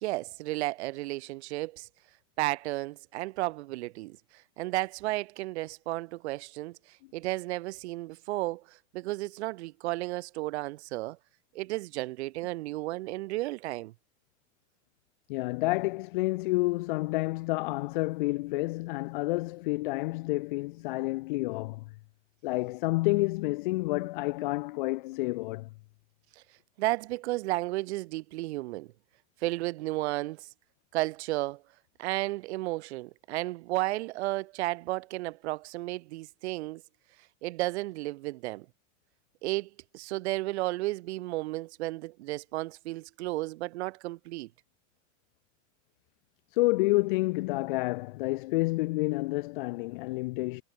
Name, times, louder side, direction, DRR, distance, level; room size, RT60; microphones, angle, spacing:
voice 1, 0.0-1.9 2.4-11.2 11.5-13.9 26.8-28.9 29.4-30.5 30.9-31.6 32.0-36.8 37.4-38.6 39.4-44.5, right 19 dB, 55° right, 1.5 m, -33 dB
voice 2, 15.3-21.9 22.4-25.7 46.5-50.6, left 22 dB, 40° left, 0.6 m, -29 dB
supercardioid pair, 175°, 39 cm